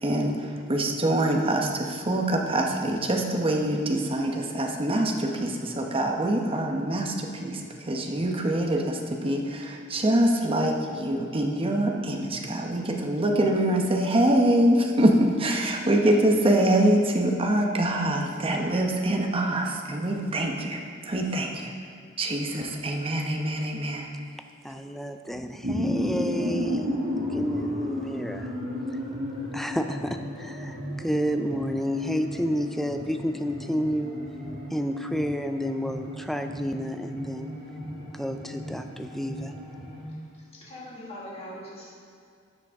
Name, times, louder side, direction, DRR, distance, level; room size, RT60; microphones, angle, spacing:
voice 1, 0.0-21.7 22.2-24.1, right 1 dB, 30° right, 1 dB, 1.0 m, -24 dB
voice 2, 24.6-28.5 29.5-34.2 34.7-37.6 38.1-39.6, equal, ahead, 7 dB, 0.4 m, -30 dB
sound 1, 25.3-40.0, equal, 55° right, 2.0 m, -34 dB
voice 3, 40.0-41.9, left 1 dB, 30° left, -6 dB, 1.9 m, -42 dB
13.0 x 7.7 x 3.6 m, 2.3 s
head